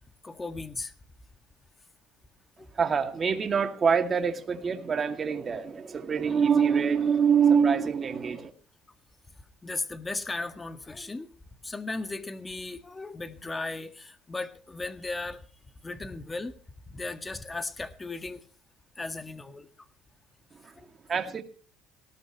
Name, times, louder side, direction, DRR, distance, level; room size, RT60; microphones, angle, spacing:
voice 1, 0.2-0.9 2.6-2.7 9.6-11.3 11.6-15.4 15.8-16.5 16.9-18.4 19.0-19.7 20.7-20.9, left 3 dB, 15° left, 9 dB, 1.8 m, -36 dB
voice 2, 2.7-8.5 20.5-20.7 21.1-21.4, right 6 dB, 30° right, 6 dB, 2.4 m, -25 dB
19.0 x 18.0 x 3.1 m, 0.39 s
cardioid pair, 135°, 0 cm